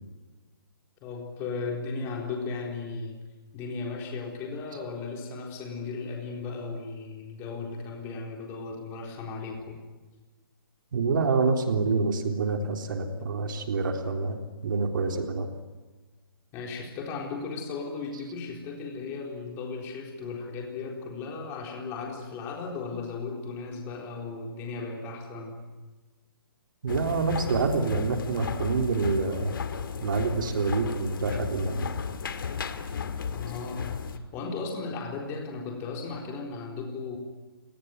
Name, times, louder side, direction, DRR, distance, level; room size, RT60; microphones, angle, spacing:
voice 1, 1.0-3.2 3.5-9.8 16.5-25.7 33.3-37.2, left 4 dB, 20° left, 0 dB, 4.1 m, -36 dB
voice 2, 10.9-14.4 14.6-15.5 26.8-29.5 30.0-31.9, right 4 dB, 60° right, 4 dB, 3.7 m, -27 dB
sound 1, 26.9-34.2, left 6 dB, 65° left, 2.2 m, -34 dB
29.0 x 20.0 x 9.4 m, 1.2 s
hypercardioid pair, 160°, 12 cm